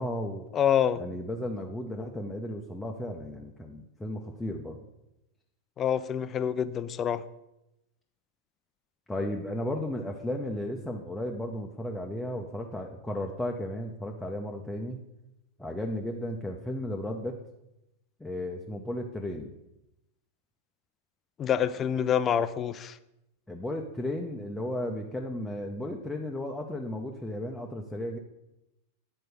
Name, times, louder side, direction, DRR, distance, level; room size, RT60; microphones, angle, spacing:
voice 1, 0.0-0.4 1.0-4.8 9.1-15.0 15.6-17.4 18.2-19.5 23.5-28.2, left 1 dB, 5° left, 0.8 m, -34 dB
voice 2, 0.5-1.0 5.8-7.2 21.4-23.0, left 9 dB, 25° left, 0.4 m, -26 dB
9.3 x 4.4 x 6.6 m
figure-of-eight pair, 90°, 0 cm